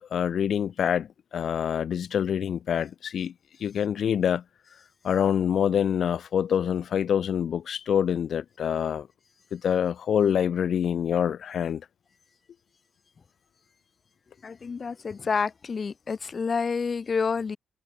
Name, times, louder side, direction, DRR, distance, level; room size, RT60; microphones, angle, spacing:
voice 1, 0.0-3.3 3.6-4.4 5.0-9.1 9.5-11.8, left 8 dB, 60° left, 1.0 m, -26 dB
voice 2, 14.4-17.6, left 5 dB, 40° left, 1.7 m, -29 dB
cardioid pair, 90°, 0 cm